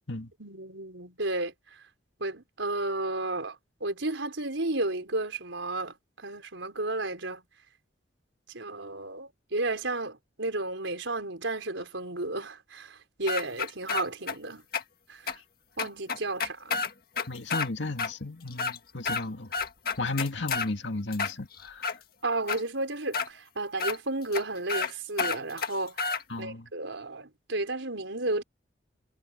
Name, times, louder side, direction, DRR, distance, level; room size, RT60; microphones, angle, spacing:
voice 1, 0.4-1.5 2.2-7.4 8.5-14.6 15.1-15.3 15.8-16.8 22.2-28.4, right 2 dB, 90° right, 5.0 m, -33 dB
sound 1, 13.3-14.4 14.7-14.8 15.3-15.4 15.8-17.7 18.0-18.1 18.5-19.2 19.5-20.7 21.1-22.0 22.5-22.6 23.1-23.3 23.8-24.0 24.3-24.4 24.7-24.9 25.2-26.2, left 4 dB, 50° left, 2.0 m, -30 dB
voice 2, 17.3-19.5 20.0-21.9 26.3-26.7, left 2 dB, 80° left, 2.1 m, -34 dB
head